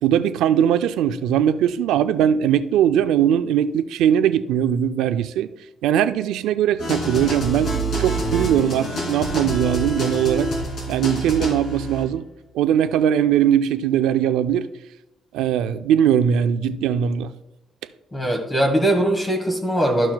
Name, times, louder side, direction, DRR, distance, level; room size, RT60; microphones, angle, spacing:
voice 1, 0.0-5.5 5.8-10.5 10.9-12.2 12.5-14.7 15.3-17.3, right 9 dB, 90° right, 0.4 m, -20 dB
sound 1, 6.8-12.1, right 1 dB, 60° left, 2.7 m, -27 dB
voice 2, 18.1-20.1, right 1 dB, 20° left, 1.3 m, -20 dB
13.0 x 5.9 x 2.3 m
cardioid pair, 90°, 0 cm